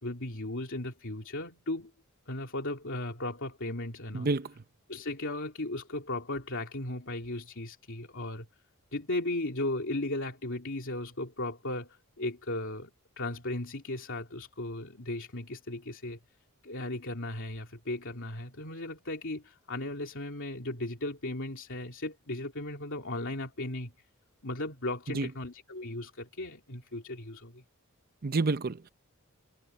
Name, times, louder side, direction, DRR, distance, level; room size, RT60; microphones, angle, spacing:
voice 1, 0.0-1.9 2.3-4.3 4.9-8.5 8.9-16.2 16.6-24.1 24.4-27.6, left 2 dB, 60° left, 3.1 m, -36 dB
voice 2, 4.1-4.5 25.1-25.3 28.2-28.9, right 3 dB, 45° right, 0.7 m, -29 dB
head